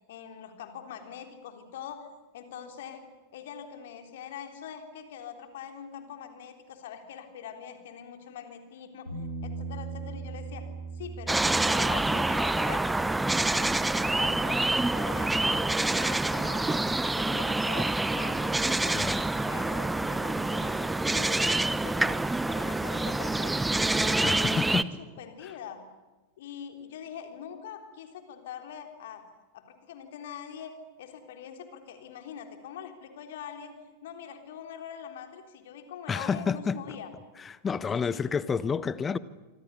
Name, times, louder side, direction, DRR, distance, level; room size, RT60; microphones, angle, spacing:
voice 1, 0.1-2.1 2.3-3.0 3.3-10.7 10.9-14.6 14.9-19.1 19.5-22.2 22.5-25.8 26.4-29.2 29.5-30.7 31.0-33.7 34.0-37.1 37.9-38.2, left 8 dB, 55° left, 3.6 m, -43 dB
Bass guitar, 9.1-15.3, right 3 dB, 85° left, 7.1 m, -41 dB
sound 1, 11.3-24.8, right 2 dB, 5° right, 0.8 m, -27 dB
voice 2, 18.9-19.2 24.2-24.9 36.1-36.8 37.4-39.2, left 6 dB, 20° left, 1.0 m, -29 dB
26.0 x 25.5 x 6.9 m
figure-of-eight pair, 90°, 0 cm